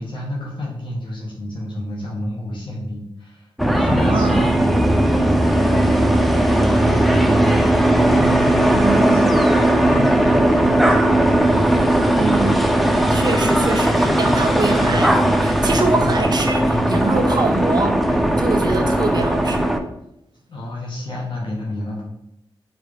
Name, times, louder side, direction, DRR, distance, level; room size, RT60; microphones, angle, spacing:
voice 1, 0.0-3.5 3.8-11.9 20.5-22.0, left 1 dB, 65° left, -3 dB, 1.5 m, -30 dB
sound 1, 3.6-19.8, right 1 dB, ahead, 0.6 m, -17 dB
voice 2, 3.9-4.5 8.7-9.3 12.1-12.7 13.1-19.8, right 3 dB, 50° right, 3 dB, 1.1 m, -24 dB
4.8 x 4.3 x 5.0 m, 0.82 s
wide cardioid pair, 95°, 9 cm